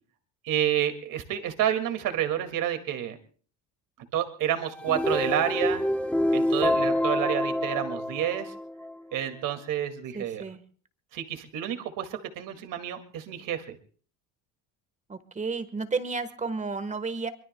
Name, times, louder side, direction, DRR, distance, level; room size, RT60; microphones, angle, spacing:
voice 1, 0.4-3.2 4.1-5.8 6.3-8.5 9.1-10.4 11.1-13.7, right 10 dB, 60° right, 7 dB, 2.2 m, -29 dB
sound 1, 4.6-8.9, left 1 dB, 5° left, 0.9 m, -27 dB
voice 2, 10.1-10.6 15.1-17.3, right 4 dB, 20° right, 11 dB, 1.3 m, -32 dB
24.0 x 22.5 x 2.2 m, 0.43 s
cardioid pair, 120°, 36 cm